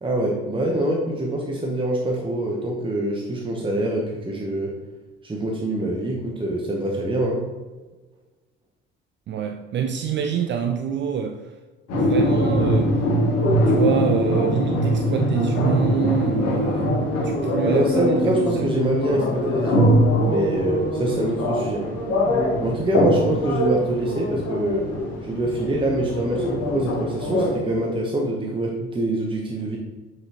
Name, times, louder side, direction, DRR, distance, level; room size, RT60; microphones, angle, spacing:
voice 1, 0.0-4.7 5.2-7.4 17.6-20.0 20.2-21.9 22.6-24.9 25.2-29.8, right 1 dB, 15° right, 0 dB, 1.0 m, -24 dB
voice 2, 9.3-11.5 11.9-13.0 13.7-16.9 17.2-18.9, right 8 dB, 35° right, 6 dB, 0.5 m, -26 dB
sound 1, 11.9-27.5, equal, 50° left, 1.7 m, -22 dB
7.0 x 6.3 x 3.0 m, 1.3 s
figure-of-eight pair, 50°, 33 cm